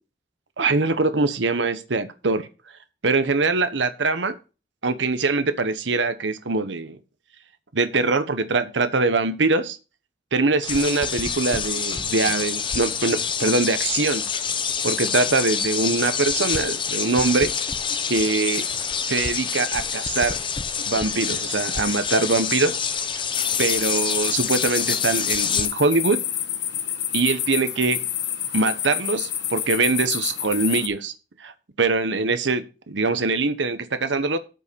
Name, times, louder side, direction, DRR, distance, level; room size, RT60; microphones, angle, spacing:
voice 1, 0.6-2.5 3.0-4.3 4.8-7.0 7.7-9.8 10.3-14.2 14.8-17.5 18.1-18.7 19.0-20.4 20.9-22.8 23.6-26.2 27.1-28.0 28.5-31.1 31.4-34.4, right 3 dB, 75° right, 11 dB, 1.0 m, -23 dB
sound 1, 10.6-25.7, left 6 dB, 25° left, 0.8 m, -27 dB
sound 2, 23.3-30.9, left 10 dB, 70° left, 1.2 m, -28 dB
9.0 x 5.4 x 6.8 m, 0.32 s
head